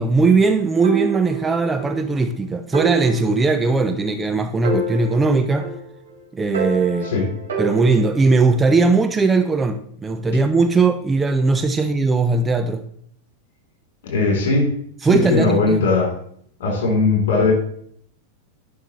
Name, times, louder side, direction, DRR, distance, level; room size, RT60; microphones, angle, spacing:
voice 1, 0.0-5.7 6.3-7.1 7.6-12.8 15.0-15.9, right 3 dB, 15° right, 7 dB, 0.5 m, -19 dB
sound 1, 0.8-2.0 2.3-2.4 2.7-4.3 4.6-6.1 6.5-8.4, right 5 dB, 65° right, 2.7 m, -27 dB
voice 2, 14.0-14.7 15.0-16.1 16.6-17.5, left 3 dB, 55° left, 1 dB, 3.1 m, -19 dB
10.5 x 5.5 x 3.0 m, 0.63 s
figure-of-eight pair, 90°, 0 cm